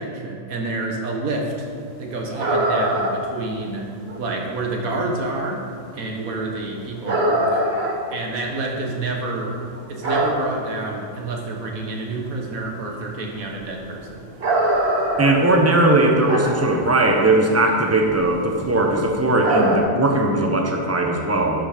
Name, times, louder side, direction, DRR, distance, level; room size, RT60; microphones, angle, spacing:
voice 1, 0.0-1.7 2.0-3.9 4.2-5.6 5.9-7.6 8.1-9.6 9.9-14.2, right 2 dB, 85° right, 0 dB, 1.8 m, -28 dB
sound 1, 2.4-3.3 3.6-3.7 4.1-4.5 5.5-5.7 6.3-6.4 7.1-9.2 9.5-10.8 11.3-11.4 11.8-11.9 12.1-12.4 12.7-13.0 13.6-16.8 17.1-17.3 17.8-18.2 18.5-18.8 19.4-19.8, right 1 dB, 45° right, 1.4 m, -22 dB
voice 2, 15.2-21.7, right 2 dB, 15° right, 2 dB, 0.9 m, -19 dB
11.5 x 6.1 x 5.1 m, 2.2 s
omnidirectional pair, 1.4 m